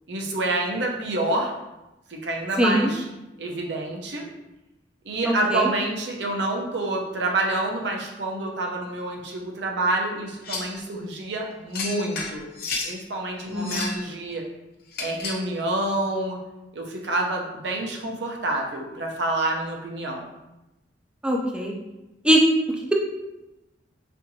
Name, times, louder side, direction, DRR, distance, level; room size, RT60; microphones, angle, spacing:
voice 1, 0.1-1.5 2.1-3.0 3.4-4.2 5.0-12.5 12.8-14.4 15.0-16.4 16.7-20.2, right 2 dB, 70° right, 1 dB, 0.6 m, -27 dB
voice 2, 2.6-2.9 5.5-5.7 13.5-13.9 21.2-21.7 22.2-22.4, equal, 5° right, -1 dB, 0.4 m, -21 dB
sound 1, 10.4-10.8 11.7-12.9 13.5-14.1 14.9-15.5, left 4 dB, 60° left, 0.7 m, -32 dB
4.3 x 2.6 x 2.7 m, 0.98 s
head